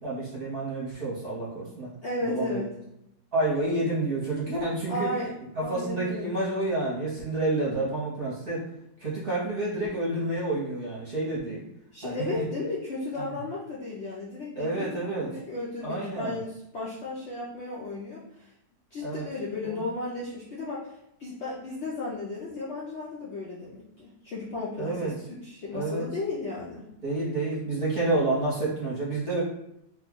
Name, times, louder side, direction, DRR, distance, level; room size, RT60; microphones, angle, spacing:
voice 1, 0.0-1.9 2.2-2.6 3.3-5.1 5.5-8.6 9.0-11.6 12.0-12.4 13.2-13.3 14.6-15.3 15.8-16.4 19.0-19.2 19.6-19.8 24.8-25.1 25.7-26.0 27.0-29.4, right 2 dB, 40° right, -7 dB, 1.0 m, -29 dB
voice 2, 2.0-2.7 4.9-5.3 5.6-6.3 11.9-18.5 18.9-20.9 21.2-26.8, left 2 dB, 60° left, -6 dB, 0.7 m, -34 dB
2.9 x 2.3 x 3.6 m, 0.80 s
omnidirectional pair, 1.7 m